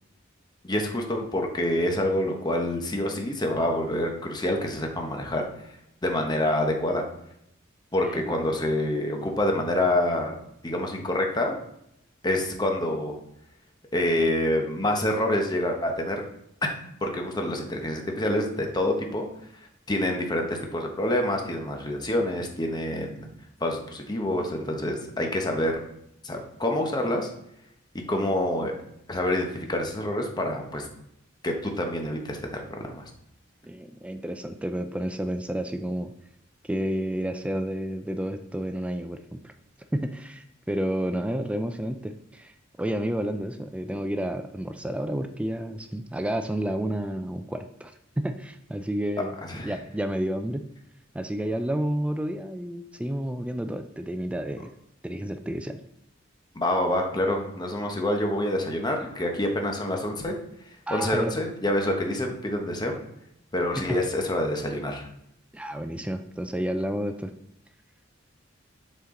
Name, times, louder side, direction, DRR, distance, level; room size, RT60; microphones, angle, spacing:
voice 1, 0.6-5.4 6.0-7.0 7.9-10.3 10.6-11.6 12.2-13.2 13.9-16.2 16.6-16.7 17.0-19.3 19.9-23.3 23.6-25.7 26.2-27.3 28.1-28.7 29.1-30.9 31.4-33.0 49.4-49.7 56.5-60.3 60.9-62.9 63.5-65.1, left 1 dB, 20° left, 2 dB, 0.9 m, -27 dB
voice 2, 8.0-8.6 28.2-28.3 33.6-36.1 36.6-39.5 39.9-42.5 42.8-47.9 48.2-50.7 51.1-54.7 55.0-55.8 60.9-61.3 63.9-64.0 65.5-67.3, right 1 dB, 5° right, 7 dB, 0.3 m, -30 dB
6.7 x 4.4 x 3.8 m, 0.76 s
head